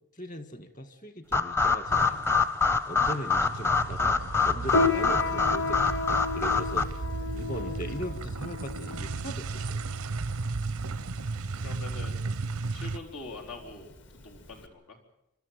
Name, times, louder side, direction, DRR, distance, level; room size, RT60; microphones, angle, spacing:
voice 1, 0.1-2.3 2.9-4.2 4.4-6.9 7.3-9.8, right 1 dB, 35° left, 10 dB, 1.8 m, -39 dB
sound 1, 1.3-6.8, left 5 dB, 10° left, 0.7 m, -26 dB
sound 2, 1.9-2.7 2.9-13.0, right 3 dB, 90° right, 0.7 m, -35 dB
Piano, 4.7-14.6, left 3 dB, 55° left, 1.8 m, -33 dB
voice 2, 11.6-12.2 12.7-13.9 14.2-15.0, left 3 dB, 90° left, 1 dB, 4.1 m, -43 dB
25.5 x 13.0 x 9.3 m, 0.85 s
head